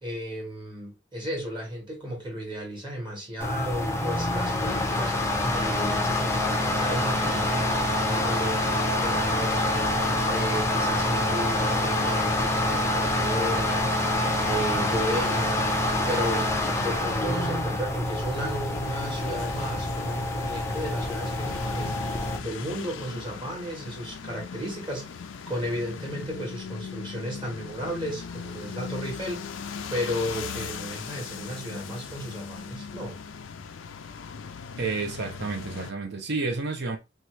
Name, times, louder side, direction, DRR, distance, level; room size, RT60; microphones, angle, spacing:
voice 1, 0.0-8.7 9.0-9.9 10.3-14.1 14.4-15.6 16.0-22.1 22.4-25.2 25.5-29.5 29.9-33.2, equal, 25° right, 1.3 m, -34 dB
sound 1, 3.4-22.4, left 1 dB, 15° left, 0.5 m, -26 dB
sound 2, 18.1-35.9, left 6 dB, 85° left, 0.4 m, -39 dB
voice 2, 34.8-37.0, right 3 dB, 60° right, 0.6 m, -30 dB
2.9 x 2.4 x 3.1 m
head